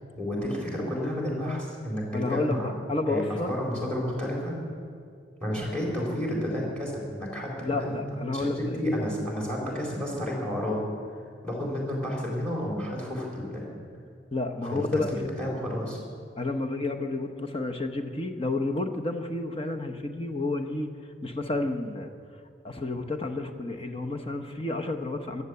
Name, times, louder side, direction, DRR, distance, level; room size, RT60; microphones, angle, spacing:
voice 1, 0.1-2.7 3.1-4.6 5.4-8.0 8.3-10.8 11.4-13.7 14.7-16.0, left 1 dB, 5° left, -2 dB, 4.1 m, -31 dB
voice 2, 2.1-3.5 7.6-8.8 14.3-15.5 16.4-20.9 21.2-22.1 22.6-25.4, left 2 dB, 30° left, 5 dB, 1.0 m, -30 dB
14.5 x 11.0 x 8.3 m, 2.3 s
head